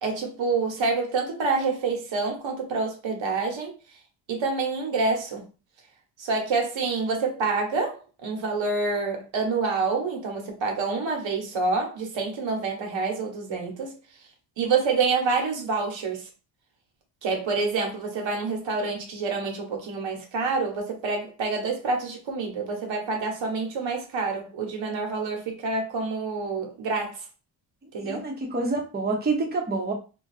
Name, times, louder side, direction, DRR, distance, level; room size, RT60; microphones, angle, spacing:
voice 1, 0.0-3.7 4.3-5.4 6.2-13.9 14.6-16.3 17.2-27.1 27.9-28.2, right 4 dB, 70° right, 1.1 m, -27 dB
voice 2, 28.0-29.9, right 3 dB, 20° right, 0.9 m, -27 dB
2.5 x 2.3 x 4.0 m
cardioid pair, 85°, 47 cm